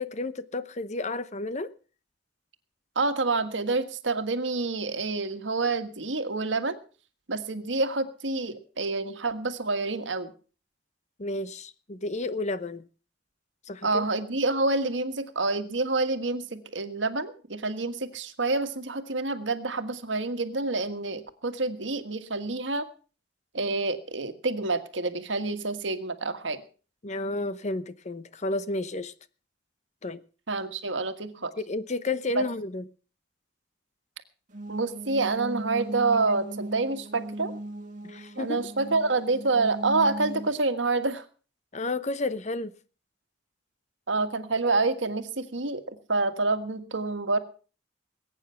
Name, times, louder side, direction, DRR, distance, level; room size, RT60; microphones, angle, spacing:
voice 1, 0.0-1.7 11.2-12.8 13.7-14.0 27.0-29.1 30.0-30.2 31.6-32.9 38.0-38.6 41.7-42.7, left 2 dB, 40° left, 0.9 m, -31 dB
voice 2, 2.9-6.8 7.3-10.3 13.8-22.9 23.5-26.6 30.5-31.5 32.4-32.5 34.7-37.6 38.4-41.2 44.1-47.4, right 3 dB, 80° right, 1.7 m, -28 dB
sound 1, 34.5-40.5, right 2 dB, 45° right, 2.4 m, -38 dB
21.0 x 9.2 x 5.8 m
head